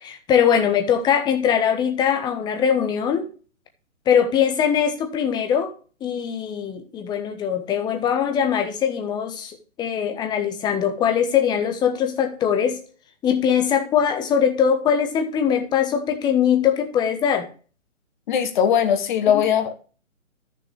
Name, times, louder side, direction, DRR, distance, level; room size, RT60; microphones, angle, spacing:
voice 1, 0.0-3.3 4.1-5.7 6.0-12.8 13.2-17.5 19.3-19.4, left 8 dB, 10° left, 6 dB, 1.1 m, -21 dB
voice 2, 18.3-19.7, left 8 dB, 35° left, 7 dB, 1.8 m, -20 dB
13.5 x 6.5 x 3.3 m, 0.38 s
figure-of-eight pair, 135°, 42 cm